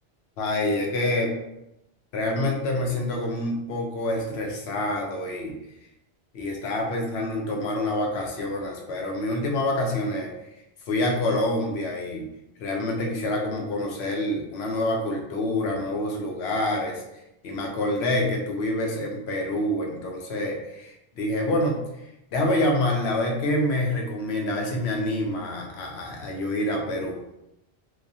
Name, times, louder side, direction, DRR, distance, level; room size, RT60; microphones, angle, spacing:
voice 1, 0.4-1.4 2.1-5.5 6.3-10.3 10.9-12.3 12.6-17.0 17.4-21.8 22.3-27.2, left 1 dB, 90° left, 0 dB, 0.9 m, -27 dB
3.0 x 2.1 x 2.6 m, 0.85 s
omnidirectional pair, 1.1 m